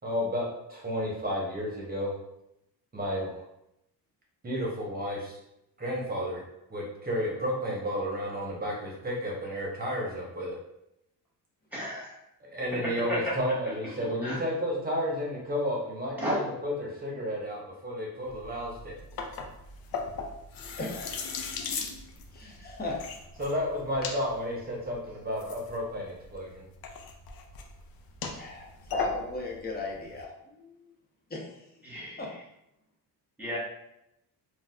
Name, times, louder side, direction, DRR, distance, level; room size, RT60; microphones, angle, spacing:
voice 1, 0.0-2.1 2.9-3.4 4.4-5.4 5.8-6.4 6.7-10.5 12.4-19.0 23.4-26.7, equal, 20° right, -2 dB, 1.0 m, -32 dB
voice 2, 11.7-12.1 14.2-14.4 16.2-16.5 31.8-32.2 33.4-33.6, equal, 5° right, -7 dB, 1.4 m, -33 dB
sound 1, 18.3-30.2, left 5 dB, 60° left, 0.5 m, -39 dB
voice 3, 20.8-21.2 22.3-23.0 28.3-30.8 31.3-31.6 32.2-32.3, left 3 dB, 25° left, -1 dB, 0.7 m, -36 dB
3.9 x 2.4 x 2.3 m, 0.82 s
cardioid pair, 110°, 41 cm